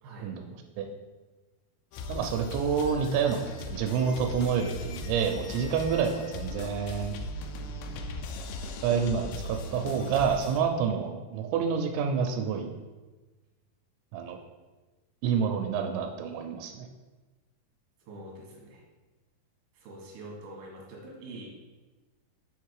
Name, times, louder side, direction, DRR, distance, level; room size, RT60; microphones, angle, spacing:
voice 1, 0.2-0.9 2.1-7.1 8.8-12.7 14.1-14.4 15.2-16.9, right 6 dB, 90° right, 5 dB, 2.9 m, -28 dB
sound 1, 1.9-10.6, left 2 dB, 80° left, 2.4 m, -38 dB
voice 2, 7.6-8.3 18.1-18.8 19.7-21.5, right 1 dB, 60° right, -3 dB, 2.6 m, -45 dB
7.0 x 3.7 x 4.7 m, 1.2 s
omnidirectional pair, 5.1 m